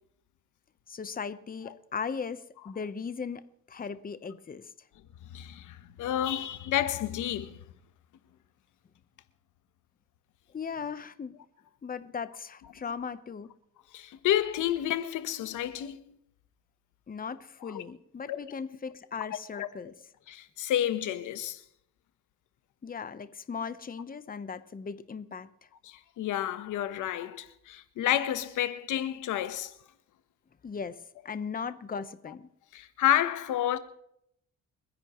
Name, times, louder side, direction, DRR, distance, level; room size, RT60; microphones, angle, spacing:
voice 1, 0.9-4.7 10.5-11.4 11.8-13.5 17.1-19.9 22.8-25.5 30.6-32.5, left 6 dB, 30° left, 1.0 m, -38 dB
voice 2, 5.3-7.6 13.9-16.1 17.7-17.8 18.3-18.4 19.6-19.7 20.3-21.6 25.8-29.7 32.7-33.8, left 11 dB, 80° left, 1.2 m, -30 dB
30.0 x 10.5 x 3.1 m
cardioid pair, 90°, 30 cm